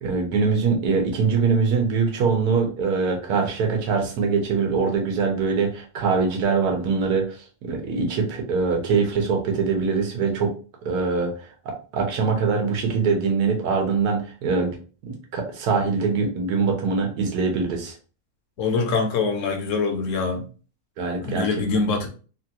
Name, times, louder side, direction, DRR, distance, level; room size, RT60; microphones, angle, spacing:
voice 1, 0.0-10.5 10.8-14.8 15.0-18.0 21.0-21.5, right 5 dB, 90° right, 2 dB, 1.3 m, -23 dB
voice 2, 18.6-20.5 21.2-22.1, left 4 dB, 65° left, 3 dB, 0.9 m, -24 dB
3.2 x 2.3 x 2.8 m, 0.37 s
omnidirectional pair, 1.6 m